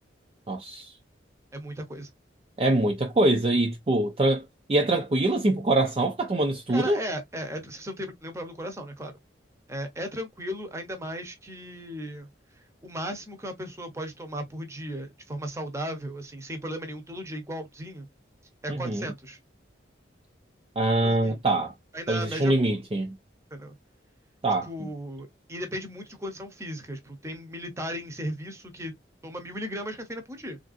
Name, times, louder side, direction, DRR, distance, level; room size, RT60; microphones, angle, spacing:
voice 1, 0.5-0.9 2.6-7.0 18.7-19.1 20.8-21.7 22.1-23.1 24.4-24.9, right 2 dB, 30° right, 0.5 m, -24 dB
voice 2, 1.5-2.1 6.7-9.1 9.7-12.3 12.8-18.1 18.6-19.4 21.0-21.4 21.9-22.7 23.5-23.8 24.7-28.9 29.2-30.6, equal, 15° right, 0.8 m, -36 dB
3.4 x 2.5 x 2.4 m
head